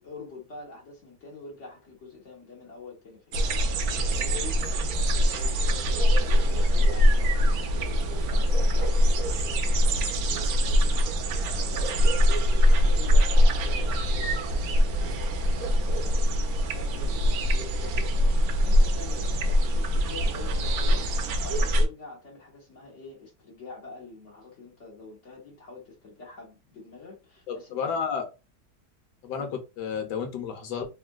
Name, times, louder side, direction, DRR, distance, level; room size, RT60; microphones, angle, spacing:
voice 1, 0.0-4.8 5.2-7.5 7.8-11.2 11.5-15.3 15.6-21.1 21.4-27.8 29.3-29.6, left 4 dB, 50° left, 1.3 m, -46 dB
sound 1, 3.3-21.9, equal, 70° right, 0.9 m, -23 dB
voice 2, 27.5-28.2 29.2-30.9, left 6 dB, 85° left, 1.4 m, -31 dB
3.6 x 2.4 x 2.2 m
omnidirectional pair, 1.8 m